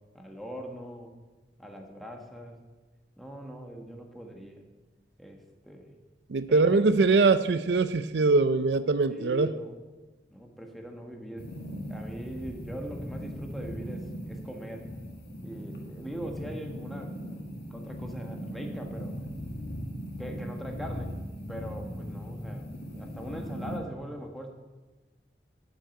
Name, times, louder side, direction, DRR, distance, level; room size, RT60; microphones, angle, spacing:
voice 1, 0.1-1.1 1.6-2.6 3.2-4.6 5.2-5.9 6.5-6.9 9.1-9.8 10.3-11.5 11.9-14.9 15.4-17.2 17.7-19.1 20.2-21.1 21.5-22.7 22.9-24.5, right 1 dB, ahead, 2 dB, 1.4 m, -41 dB
voice 2, 6.3-9.5, right 3 dB, 75° right, 13 dB, 0.5 m, -22 dB
sound 1, 11.4-23.8, equal, 65° left, 1.8 m, -39 dB
11.0 x 6.3 x 8.3 m, 1.2 s
head